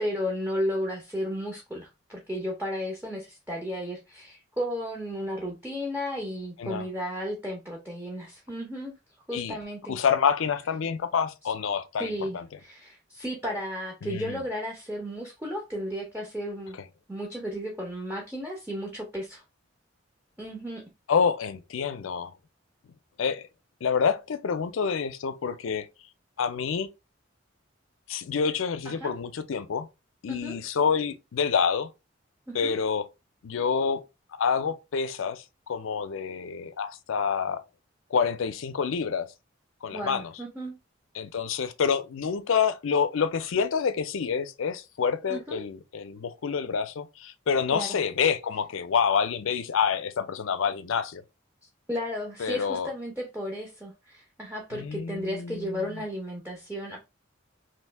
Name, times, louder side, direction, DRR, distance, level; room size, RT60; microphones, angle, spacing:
voice 1, 0.0-8.9 9.3-10.0 12.0-16.8 17.1-19.4 20.4-20.8 28.8-29.1 30.3-30.6 32.5-32.8 39.9-40.8 45.3-45.6 47.7-48.0 51.9-57.0, equal, 10° right, 0.6 m, -34 dB
voice 2, 9.9-12.5 14.0-14.4 21.1-22.3 23.2-23.5 23.8-25.9 26.4-26.9 28.1-29.9 30.2-31.9 32.5-33.1 33.4-34.0 34.3-37.6 38.1-39.3 39.8-40.3 41.2-51.2 52.4-52.9 54.7-56.0, left 6 dB, 80° left, 0.5 m, -27 dB
3.0 x 2.7 x 3.3 m
head